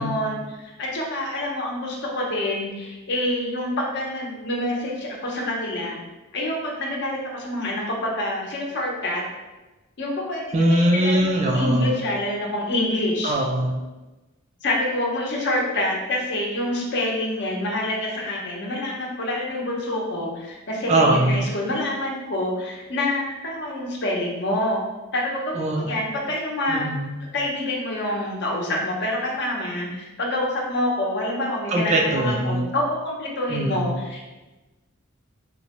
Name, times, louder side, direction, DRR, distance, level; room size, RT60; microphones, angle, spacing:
voice 1, 0.0-6.0 6.3-9.2 10.0-13.4 14.6-24.8 25.1-26.9 27.3-34.2, left 1 dB, 55° left, -2 dB, 0.7 m, -27 dB
voice 2, 10.5-11.9 13.2-13.8 20.9-21.4 25.5-26.0 26.7-27.2 31.7-32.7 33.5-33.9, right 1 dB, 30° right, 1 dB, 0.3 m, -21 dB
4.0 x 2.1 x 2.9 m, 1.1 s
head